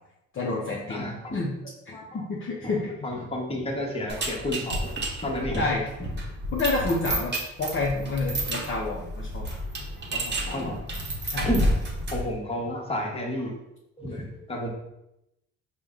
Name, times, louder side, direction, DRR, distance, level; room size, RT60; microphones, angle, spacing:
voice 1, 0.3-1.5 1.9-2.9 5.6-5.8 6.5-9.5 10.1-10.8 11.3-11.5, left 3 dB, 40° left, -3 dB, 0.6 m, -29 dB
voice 2, 0.9-1.4 1.9-2.2 2.6-2.8 3.0-6.1 10.5-11.0 11.4-11.6 12.1-13.5 14.0-14.7, equal, 20° left, -1 dB, 1.0 m, -31 dB
sound 1, 4.1-12.4, right 1 dB, 35° right, 0.8 m, -30 dB
4.5 x 2.2 x 3.6 m, 0.86 s
cardioid pair, 90°, 30 cm